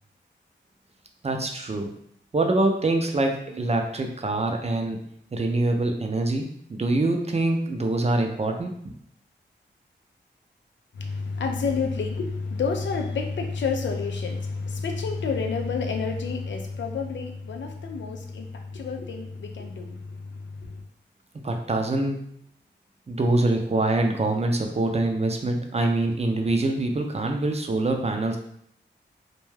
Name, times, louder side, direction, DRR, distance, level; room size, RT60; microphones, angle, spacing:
voice 1, 1.2-1.9 2.3-5.0 5.3-8.9 21.4-22.3 23.1-28.4, right 2 dB, 35° right, 3 dB, 0.5 m, -25 dB
voice 2, 11.0-20.0 20.6-20.8, left 4 dB, 75° left, 3 dB, 0.4 m, -29 dB
2.2 x 2.2 x 3.2 m, 0.69 s
cardioid pair, 45°, 19 cm